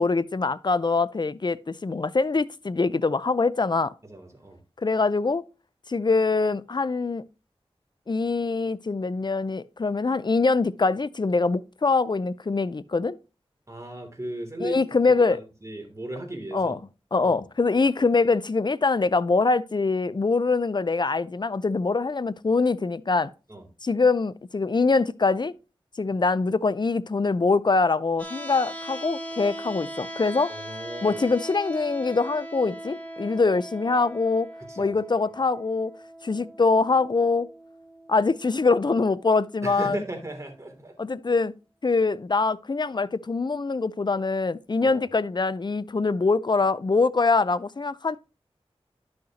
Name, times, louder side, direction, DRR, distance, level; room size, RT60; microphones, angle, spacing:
voice 1, 0.0-3.9 4.8-5.4 5.9-7.2 8.1-13.2 14.6-15.4 16.5-16.8 17.1-23.3 23.8-25.5 26.0-30.5 31.0-34.5 34.8-35.9 36.2-37.5 38.1-40.0 41.0-41.5 41.8-48.2, left 3 dB, 45° left, 0.5 m, -24 dB
voice 2, 4.0-4.6 13.7-14.8 15.1-16.8 17.2-17.4 23.5-23.7 30.5-31.2 34.7-34.9 39.6-41.0 44.8-45.1, right 1 dB, 30° right, 2.9 m, -36 dB
sound 1, 28.2-40.2, equal, 15° left, 2.2 m, -40 dB
11.5 x 6.4 x 2.9 m
wide cardioid pair, 45°, 11 cm